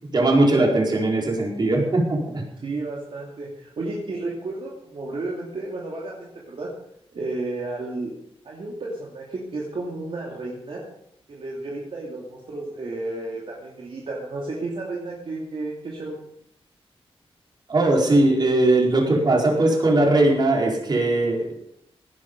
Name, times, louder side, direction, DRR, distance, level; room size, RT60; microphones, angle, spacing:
voice 1, 0.0-2.4 17.7-21.5, right 2 dB, 45° right, -1 dB, 4.5 m, -19 dB
voice 2, 2.6-6.7 7.1-8.1 8.4-10.8 11.3-16.2, right 2 dB, 65° right, -3 dB, 2.9 m, -32 dB
18.0 x 11.0 x 5.4 m, 0.76 s
wide cardioid pair, 165°, 10 cm